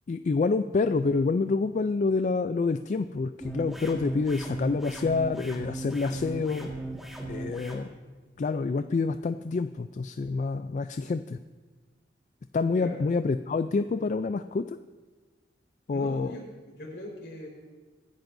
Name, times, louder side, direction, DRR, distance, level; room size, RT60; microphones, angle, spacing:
voice 1, 0.1-6.7 7.3-7.9 8.4-11.4 12.5-14.8 15.9-16.4, left 4 dB, 45° left, 10 dB, 0.3 m, -27 dB
sound 1, 3.4-7.8, right 2 dB, ahead, 1.7 m, -37 dB
voice 2, 15.9-17.5, equal, 65° left, -2 dB, 4.4 m, -40 dB
23.5 x 10.5 x 2.6 m, 1.3 s
head